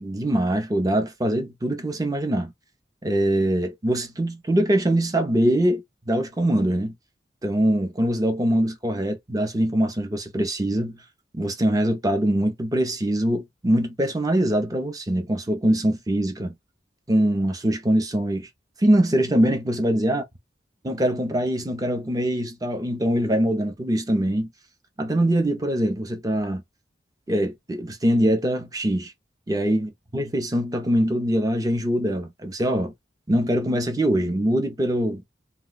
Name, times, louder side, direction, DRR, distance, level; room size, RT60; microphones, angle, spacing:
voice 1, 0.0-2.5 3.0-6.9 7.4-11.0 11.3-16.5 17.1-18.5 18.8-20.2 20.8-24.5 25.0-26.6 27.3-29.1 29.5-32.9 33.3-35.2, right 1 dB, 20° right, 0.6 m, -23 dB
2.5 x 2.2 x 3.8 m
head